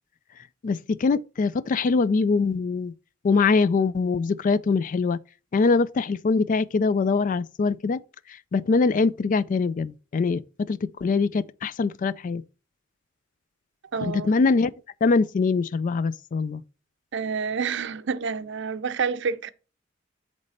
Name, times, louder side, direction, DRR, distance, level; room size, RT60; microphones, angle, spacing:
voice 1, 0.6-2.9 3.2-5.2 5.5-8.0 8.3-12.4 14.0-14.7 15.0-16.6, left 4 dB, 40° left, 0.3 m, -23 dB
voice 2, 13.9-14.3 17.1-19.5, right 5 dB, 65° right, 0.6 m, -28 dB
8.1 x 3.3 x 6.4 m
head